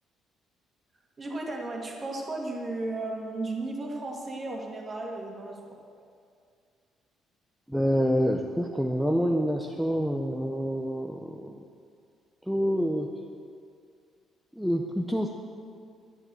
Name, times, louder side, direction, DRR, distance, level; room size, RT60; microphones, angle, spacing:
voice 1, 1.2-5.8, right 2 dB, 20° right, 0 dB, 2.0 m, -34 dB
voice 2, 7.7-11.7 12.5-13.1 14.5-15.3, equal, ahead, 1 dB, 0.6 m, -27 dB
11.0 x 10.5 x 7.6 m, 2.3 s
cardioid pair, 170°, 0 cm